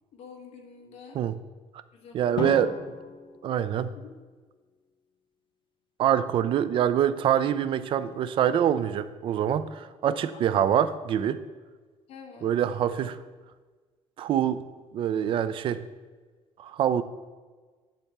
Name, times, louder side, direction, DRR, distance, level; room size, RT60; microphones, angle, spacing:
voice 1, 0.1-1.2 1.9-2.6 3.9-4.1 10.3-10.4 12.1-12.5, left 5 dB, 55° left, 1 dB, 1.1 m, -47 dB
voice 2, 2.1-2.8 3.4-3.9 6.0-11.4 12.4-13.2 14.2-14.6 14.9-15.8 16.6-17.0, right 9 dB, 45° right, 14 dB, 0.4 m, -25 dB
Drum, 2.4-4.5, left 6 dB, 40° left, 0.7 m, -37 dB
10.0 x 3.4 x 6.6 m, 1.4 s
cardioid pair, 165°, 12 cm